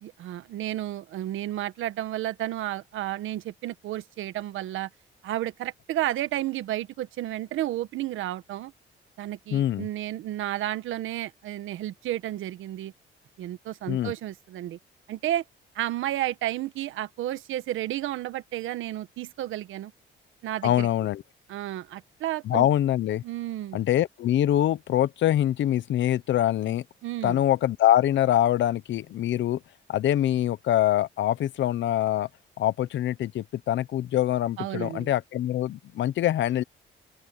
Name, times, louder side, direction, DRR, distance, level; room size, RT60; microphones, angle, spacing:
voice 1, 0.0-4.9 5.2-8.7 9.2-12.9 13.4-14.8 15.1-15.4 15.7-19.9 20.4-20.9 21.5-22.7 23.2-23.8 27.0-27.4 34.6-35.1, right 13 dB, 85° right, 1.4 m, -32 dB
voice 2, 9.5-9.9 13.9-14.1 20.6-21.2 22.4-23.2 23.7-26.8 27.2-29.6 29.9-32.3 32.6-36.6, left 12 dB, 70° left, 0.9 m, -24 dB
open air
cardioid pair, 90°, 20 cm